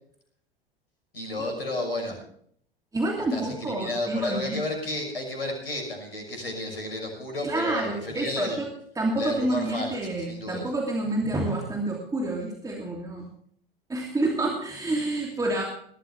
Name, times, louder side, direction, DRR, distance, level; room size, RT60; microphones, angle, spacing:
voice 1, 1.1-2.2 3.3-8.6 9.2-10.6, left 1 dB, 85° left, 2 dB, 6.2 m, -32 dB
voice 2, 2.9-4.6 7.4-13.3 13.9-15.6, right 2 dB, 10° right, 0 dB, 2.9 m, -28 dB
20.5 x 13.5 x 3.4 m, 0.62 s
figure-of-eight pair, 85°, 29 cm